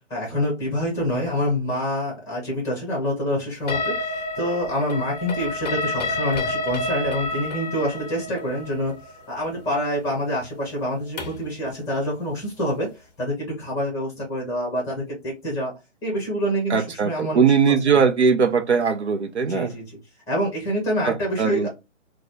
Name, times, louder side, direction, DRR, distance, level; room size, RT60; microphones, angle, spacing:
voice 1, 0.1-8.9 9.3-12.9 13.2-15.7 16.0-17.9 19.5-19.8 20.3-21.7, equal, 10° left, 1.2 m, -26 dB
sound 1, 3.7-11.5, left 2 dB, 35° left, 0.6 m, -29 dB
voice 2, 16.7-19.7 21.0-21.7, right 6 dB, 65° right, 0.7 m, -20 dB
3.9 x 2.3 x 3.0 m
figure-of-eight pair, 140°, 36 cm